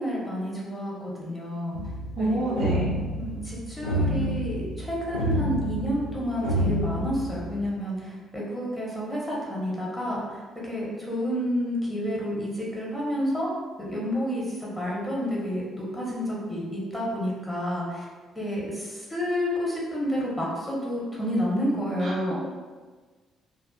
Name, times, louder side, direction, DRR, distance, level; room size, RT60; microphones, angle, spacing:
voice 1, 0.0-1.8 2.2-2.7 3.2-10.4 10.7-13.5 13.8-18.0 18.4-22.3, equal, 10° left, -5 dB, 0.9 m, -30 dB
sound 1, 1.7-7.7, equal, 80° left, 0.4 m, -29 dB
voice 2, 2.2-2.9 22.0-22.3, right 1 dB, 55° right, -6 dB, 0.6 m, -27 dB
2.4 x 2.4 x 2.3 m, 1.4 s
figure-of-eight pair, 45°, 0 cm